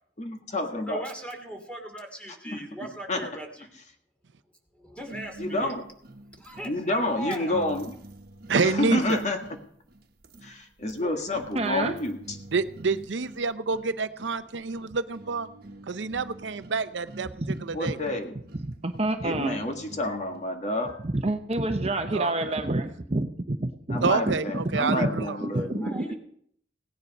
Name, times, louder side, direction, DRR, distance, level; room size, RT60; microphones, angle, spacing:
voice 1, 0.2-1.0 2.3-2.6 3.1-3.3 5.4-5.8 6.6-7.9 8.6-9.4 10.4-12.4 17.7-18.4 19.2-20.9 23.9-26.1, left 1 dB, 40° left, 4 dB, 1.8 m, -29 dB
voice 2, 0.9-3.7 4.7-5.7 6.4-7.7 25.8-26.1, right 1 dB, 5° left, 3 dB, 2.5 m, -39 dB
sound 1, 5.1-20.5, right 1 dB, 55° right, 1.3 m, -46 dB
voice 3, 8.5-9.2 12.5-15.5 15.9-17.3 17.6-18.0 22.1-22.6 24.0-25.4, right 4 dB, 85° right, 13 dB, 0.6 m, -28 dB
voice 4, 11.5-12.0 17.5-17.6 17.9-18.0 18.3-19.6 21.0-26.1, right 2 dB, 35° right, 7 dB, 0.9 m, -29 dB
17.0 x 9.9 x 5.4 m, 0.65 s
head